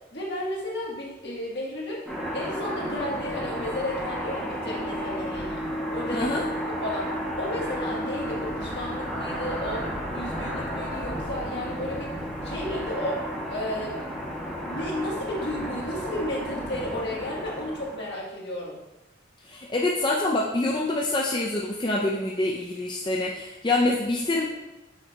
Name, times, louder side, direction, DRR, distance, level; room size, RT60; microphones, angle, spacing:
voice 1, 0.1-2.0 2.3-5.6 5.9-6.4 6.8-7.1 7.4-9.9 10.1-12.1 12.4-13.2 13.5-14.1 14.6-18.8, left 1 dB, 65° left, -4 dB, 1.6 m, -33 dB
sound 1, 2.1-18.1, equal, ahead, 1.3 m, -32 dB
voice 2, 6.1-6.4 19.5-24.5, left 2 dB, 25° left, -2 dB, 0.5 m, -26 dB
6.4 x 3.3 x 4.5 m, 0.99 s
head